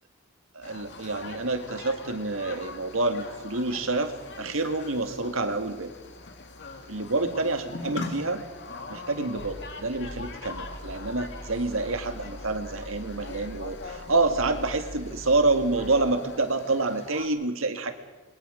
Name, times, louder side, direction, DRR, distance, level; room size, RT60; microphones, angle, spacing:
voice 1, 0.5-5.9 6.9-8.4 8.9-17.9, right 3 dB, 70° right, 7 dB, 2.0 m, -27 dB
sound 1, 0.6-17.3, left 3 dB, 55° left, 2.2 m, -42 dB
sound 2, 9.3-16.1, equal, 25° right, 2.0 m, -43 dB
28.0 x 22.5 x 5.1 m, 1.2 s
head